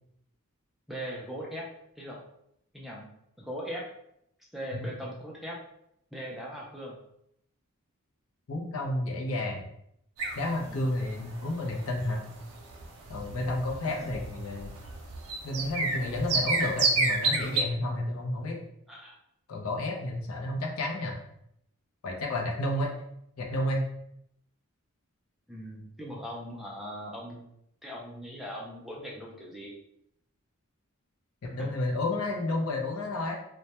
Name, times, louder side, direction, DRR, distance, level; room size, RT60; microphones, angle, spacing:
voice 1, 0.9-1.7 2.0-2.2 2.7-3.1 3.4-3.9 4.5-5.6 6.1-7.0 10.6-10.8 13.8-14.1 18.9-19.1 25.5-27.5 27.8-29.7 31.6-31.7, equal, ahead, -4 dB, 0.3 m, -39 dB
voice 2, 8.5-9.6 10.4-12.2 13.1-14.7 15.4-18.6 19.5-21.2 22.0-22.9 23.4-23.9 31.4-33.3, left 1 dB, 70° left, 0 dB, 0.5 m, -31 dB
sound 1, 10.2-17.6, right 3 dB, 75° right, 0.5 m, -31 dB
2.1 x 2.1 x 2.8 m, 0.76 s
head